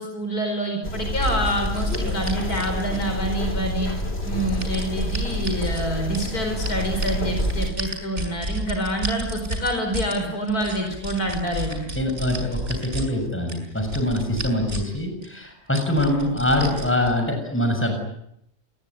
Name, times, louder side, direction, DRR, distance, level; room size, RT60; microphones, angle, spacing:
voice 1, 0.0-3.9 4.2-11.8, right 1 dB, 85° left, 5 dB, 5.1 m, -27 dB
sound 1, 0.8-7.7, left 1 dB, 45° left, 4.2 m, -28 dB
sound 2, 1.2-3.3 4.0-5.8 6.1-10.1 10.5-13.0 13.5-15.0 15.2-15.3 15.7-17.1, right 1 dB, 50° right, 6.6 m, -32 dB
voice 2, 11.9-18.0, left 1 dB, 10° left, 4 dB, 6.9 m, -24 dB
27.0 x 22.0 x 9.8 m, 0.75 s
omnidirectional pair, 1.6 m